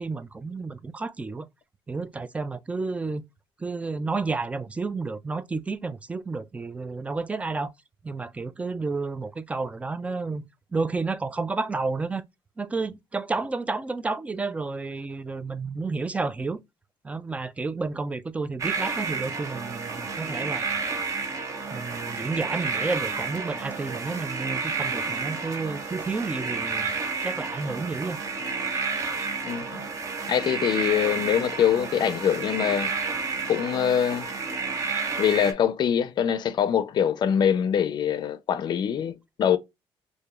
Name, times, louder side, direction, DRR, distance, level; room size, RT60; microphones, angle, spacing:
voice 1, 0.0-1.5 1.9-3.3 3.6-7.7 8.0-12.2 12.6-16.6 17.0-20.9 21.7-26.9 27.2-28.2, right 3 dB, 15° right, 0.3 m, -31 dB
sound 1, 18.6-35.5, right 4 dB, 35° right, 0.7 m, -31 dB
voice 2, 29.4-29.8 30.3-32.9 33.5-34.3 35.2-39.6, left 9 dB, 50° left, 0.5 m, -24 dB
4.8 x 2.6 x 2.4 m
cardioid pair, 155°, 10 cm